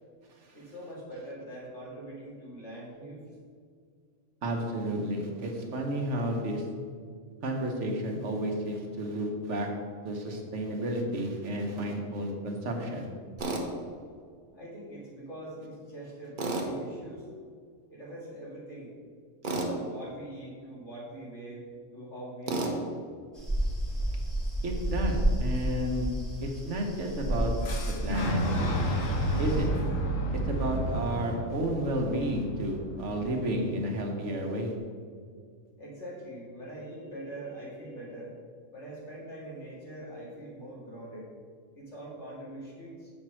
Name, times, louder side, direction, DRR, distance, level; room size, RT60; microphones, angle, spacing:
voice 1, 0.5-3.2 14.5-17.3 17.9-19.0 19.7-21.7 21.9-22.9 35.8-38.3 38.7-41.3 41.7-43.1, right 1 dB, 65° left, -6 dB, 2.5 m, -43 dB
voice 2, 4.4-6.6 7.4-9.7 10.0-13.1 24.6-26.1 26.4-27.5 28.0-28.7 29.4-29.7 30.5-34.7, right 1 dB, 65° right, 2 dB, 1.3 m, -31 dB
Tools, 13.4-13.6 16.4-16.7 19.4-19.7 22.5-22.8, right 2 dB, 45° right, 1.0 m, -30 dB
sound 1, 23.3-29.7, right 1 dB, ahead, 1.9 m, -31 dB
Fire / Explosion, 27.6-33.5, equal, 85° left, 1.5 m, -31 dB
7.2 x 4.4 x 6.1 m, 2.1 s
omnidirectional pair, 1.3 m